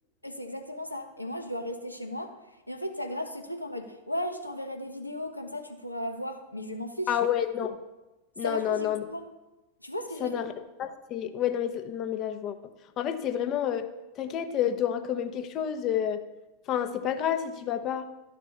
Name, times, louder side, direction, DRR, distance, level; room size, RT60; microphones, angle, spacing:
voice 1, 0.2-2.3 2.7-7.2 8.4-9.2 9.8-10.4, left 1 dB, 85° left, 5 dB, 0.9 m, -35 dB
voice 2, 7.1-7.8 8.4-9.0 10.2-10.5 10.8-12.6 13.0-13.8 14.2-16.2 16.7-18.1, left 9 dB, 35° left, 8 dB, 0.8 m, -29 dB
12.0 x 4.2 x 7.0 m, 1.0 s
figure-of-eight pair, 90°, 0 cm